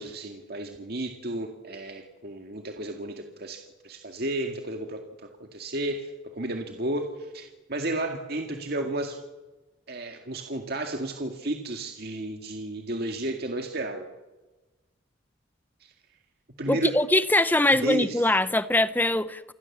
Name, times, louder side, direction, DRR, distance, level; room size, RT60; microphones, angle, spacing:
voice 1, 0.0-5.0 5.4-9.2 9.9-14.1 15.8-15.9 16.6-16.9 17.7-18.3, right 1 dB, 50° right, 2.0 m, -32 dB
voice 2, 16.7-19.5, left 1 dB, 10° left, 0.8 m, -22 dB
28.0 x 21.5 x 7.3 m
head